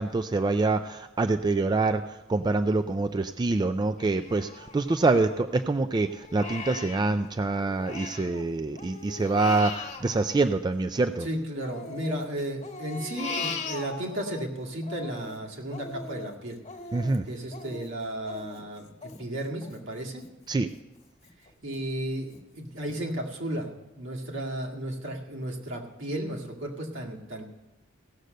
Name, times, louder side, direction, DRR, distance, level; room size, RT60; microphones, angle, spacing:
voice 1, 0.0-2.0 2.3-11.3 16.9-17.2 20.5-20.7, right 3 dB, 20° right, 9 dB, 0.3 m, -25 dB
Crying sobbing, 4.0-5.6 6.1-8.4 8.7-11.2 11.6-14.4 14.8-20.3 20.7-20.8 21.3-21.8 22.3-22.4 22.9-23.0, left 4 dB, 35° left, 1.4 m, -40 dB
voice 2, 11.2-16.6 17.3-20.2 21.6-27.4, right 1 dB, 65° right, -1 dB, 2.1 m, -34 dB
16.5 x 6.6 x 6.5 m, 1.0 s
head